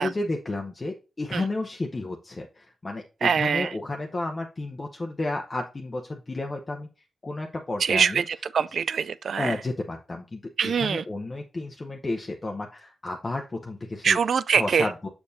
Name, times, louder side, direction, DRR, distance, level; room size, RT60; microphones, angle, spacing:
voice 1, 0.0-6.9 7.2-8.2 9.4-14.2 14.5-15.1, left 2 dB, 25° left, 0.7 m, -32 dB
voice 2, 3.2-3.7 7.9-8.2 8.5-9.5 10.6-11.0 14.0-14.8, right 6 dB, 70° right, 0.3 m, -23 dB
7.0 x 6.7 x 2.6 m
wide cardioid pair, 125°, 0 cm